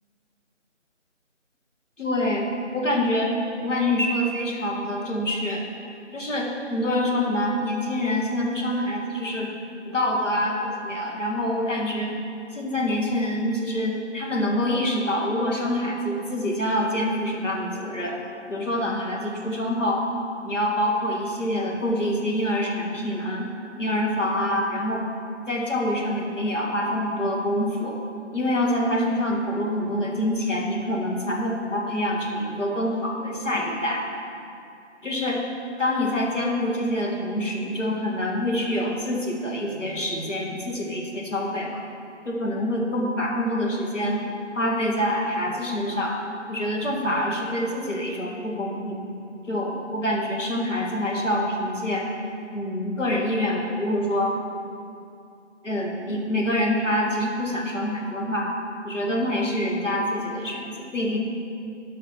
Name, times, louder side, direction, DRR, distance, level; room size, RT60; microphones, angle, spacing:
voice 1, 2.0-3.4 3.6-5.6 6.1-9.5 9.8-12.1 12.5-18.2 18.5-20.0 20.4-23.5 23.7-25.0 25.5-28.0 28.3-34.0 35.0-35.4 35.8-41.8 42.2-44.2 44.5-46.2 46.5-49.0 49.5-52.1 52.5-54.4 55.6-58.5 58.8-61.2, left 1 dB, 85° left, -1 dB, 1.8 m, -26 dB
10.0 x 5.6 x 5.8 m, 2.6 s
figure-of-eight pair, 160°, 37 cm